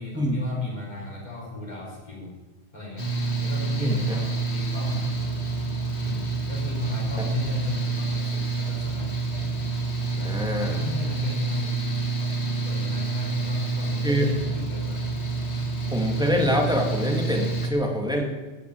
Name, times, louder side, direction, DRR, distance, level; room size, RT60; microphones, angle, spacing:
voice 1, 0.0-2.3 2.7-3.1 3.4-5.3 6.0-9.6 10.1-12.4 12.6-15.1, left 3 dB, 40° left, -3 dB, 4.3 m, -35 dB
Mechanical fan, 3.0-17.7, right 3 dB, 70° left, 2.2 m, -28 dB
voice 2, 3.8-4.2 10.2-10.7 14.0-14.3 15.9-18.2, equal, 5° right, 0 dB, 2.4 m, -25 dB
15.5 x 7.0 x 8.6 m, 1.2 s
omnidirectional pair, 1.1 m